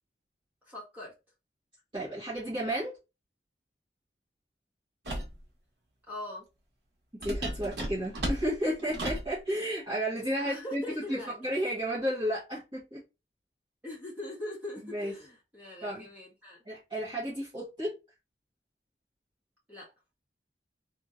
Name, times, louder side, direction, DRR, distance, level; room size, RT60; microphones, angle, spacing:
voice 1, 0.6-1.1 6.1-6.5 10.4-11.5 13.8-16.6 19.7-19.9, left 1 dB, 10° right, 1.6 m, -41 dB
voice 2, 1.9-2.9 7.1-13.0 14.8-15.1 15.8-16.0 16.6-17.9, equal, 25° right, 1.6 m, -32 dB
sound 1, 5.0-5.4 7.2-9.3, right 1 dB, 75° right, 1.3 m, -34 dB
3.6 x 2.9 x 2.6 m
head